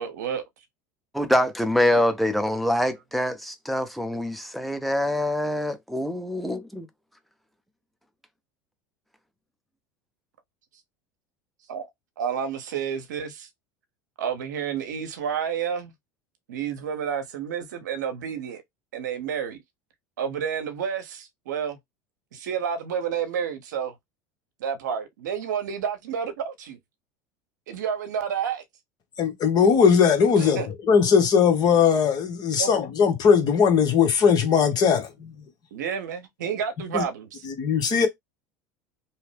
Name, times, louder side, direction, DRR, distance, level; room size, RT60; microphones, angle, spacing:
voice 1, 0.0-0.4 1.9-2.0 11.7-11.9 12.2-13.5 14.2-15.9 16.5-18.6 18.9-19.6 20.2-21.8 22.3-23.9 24.6-26.8 27.7-28.6 30.4-30.7 32.6-32.7 35.7-37.4, right 7 dB, 85° right, 0.7 m, -30 dB
voice 2, 1.1-6.9, left 1 dB, ahead, 0.6 m, -25 dB
voice 3, 29.2-35.3 36.9-37.0 37.4-38.1, left 6 dB, 45° left, 1.0 m, -19 dB
2.8 x 2.0 x 3.2 m
hypercardioid pair, 90°, 9 cm